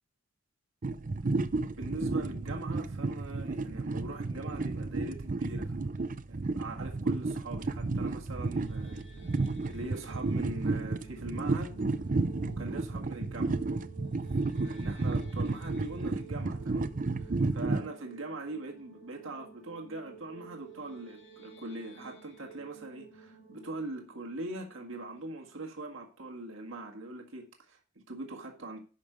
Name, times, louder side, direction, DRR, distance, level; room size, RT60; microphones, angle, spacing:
sound 1, 0.8-17.9, right 3 dB, 40° right, 0.5 m, -32 dB
voice 1, 1.7-5.8 6.3-9.0 9.7-11.8 12.5-13.6 14.6-28.8, right 2 dB, 70° right, 1.8 m, -41 dB
sound 2, 8.5-25.5, right 5 dB, 70° left, 2.0 m, -53 dB
11.5 x 5.4 x 5.1 m
head